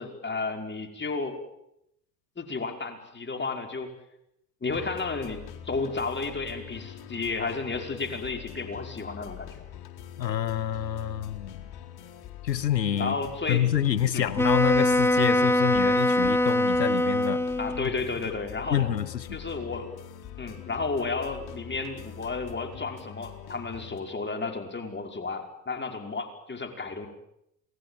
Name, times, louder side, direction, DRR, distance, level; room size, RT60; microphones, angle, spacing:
voice 1, 0.0-1.4 2.4-4.0 4.6-9.6 13.0-13.7 14.1-14.3 17.6-18.9 19.3-19.9 20.4-27.1, left 4 dB, 20° left, 5.4 m, -32 dB
sound 1, 4.7-24.0, left 10 dB, 50° left, 4.2 m, -44 dB
voice 2, 10.2-11.6 12.4-13.2 13.5-17.5 17.8-17.9 18.7-19.3, left 10 dB, 90° left, 1.3 m, -27 dB
Wind instrument woodwind instrument, 14.4-17.9, left 1 dB, 5° left, 1.4 m, -23 dB
27.5 x 20.5 x 9.1 m
hypercardioid pair, 65°, 49 cm